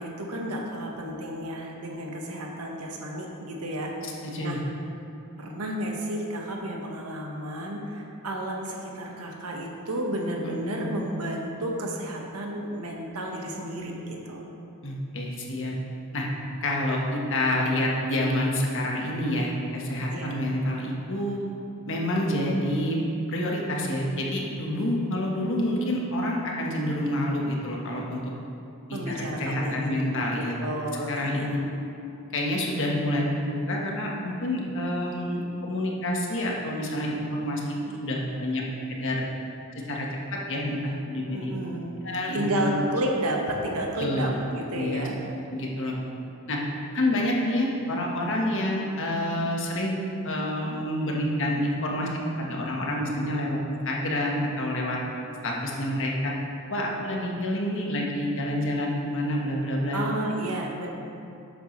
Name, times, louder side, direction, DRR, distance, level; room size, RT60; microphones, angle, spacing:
voice 1, 0.0-4.6 5.4-14.4 20.1-20.4 28.9-30.0 30.3-31.6 41.3-41.9 42.3-45.2 59.9-60.9, right 1 dB, 80° right, 0 dB, 1.3 m, -32 dB
voice 2, 4.0-4.6 10.4-10.9 14.8-15.7 16.1-16.3 16.6-21.4 21.9-23.0 23.3-28.2 28.9-30.5 31.1-31.6 32.3-38.6 38.9-39.3 39.9-40.1 40.5-41.5 42.0-42.8 44.0-44.4 44.7-45.1 45.5-45.9 46.5-46.6 46.9-49.9 50.2-52.1 52.4-55.0 55.4-56.3 56.7-60.0, left 1 dB, 60° left, -2 dB, 1.4 m, -28 dB
11.5 x 7.9 x 3.3 m, 2.8 s
head